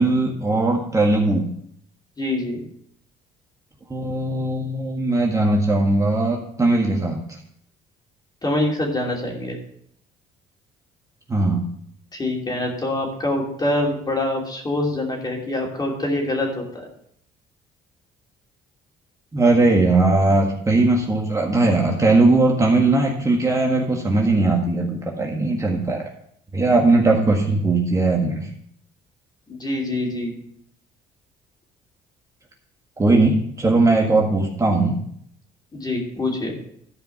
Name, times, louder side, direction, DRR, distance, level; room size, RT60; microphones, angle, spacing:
voice 1, 0.0-1.5 3.9-7.2 11.3-11.6 19.3-26.1 26.5-28.5 33.0-35.0, right 2 dB, 20° right, -1 dB, 1.7 m, -19 dB
voice 2, 2.2-2.6 8.4-9.6 12.1-16.9 29.5-30.3 35.7-36.5, left 1 dB, 25° left, 0 dB, 3.0 m, -25 dB
12.5 x 5.2 x 5.7 m, 0.68 s
cardioid pair, 110°, 17 cm